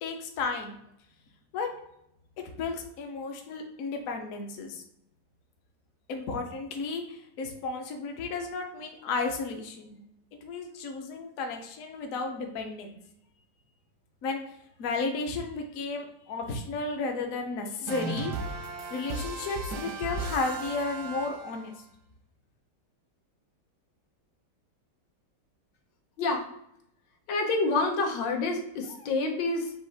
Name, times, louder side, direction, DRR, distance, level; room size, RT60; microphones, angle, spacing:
voice 1, 0.0-0.8 1.5-1.7 2.6-4.8 6.1-10.0 10.4-12.9 14.2-14.4 14.8-18.3 18.6-21.7, left 4 dB, 60° left, 4 dB, 0.9 m, -33 dB
sound 1, 17.9-21.7, right 3 dB, 85° right, 1.5 m, -36 dB
voice 2, 27.3-29.7, left 3 dB, 80° left, 2 dB, 1.5 m, -28 dB
5.4 x 2.5 x 3.3 m, 0.77 s
omnidirectional pair, 2.0 m